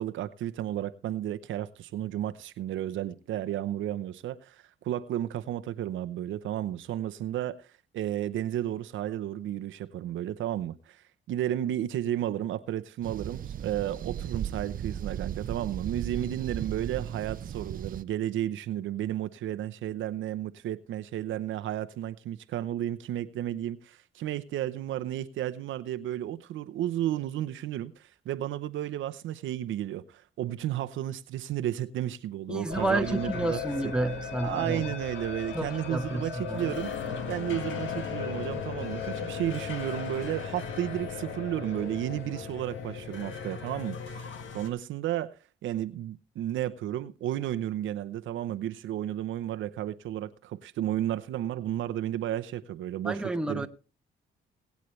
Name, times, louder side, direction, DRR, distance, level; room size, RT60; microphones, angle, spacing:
voice 1, 0.0-7.7 7.9-33.9 34.4-36.9 37.3-45.3 45.6-53.7, right 12 dB, 80° right, 0.8 m, -33 dB
sound 1, 13.0-18.0, right 9 dB, 45° right, 0.6 m, -36 dB
voice 2, 32.5-34.8 35.5-36.7 53.0-53.7, right 2 dB, 5° right, 1.0 m, -30 dB
sound 2, 32.7-44.7, left 7 dB, 75° left, 1.8 m, -37 dB
21.0 x 8.4 x 3.2 m
cardioid pair, 90°, 20 cm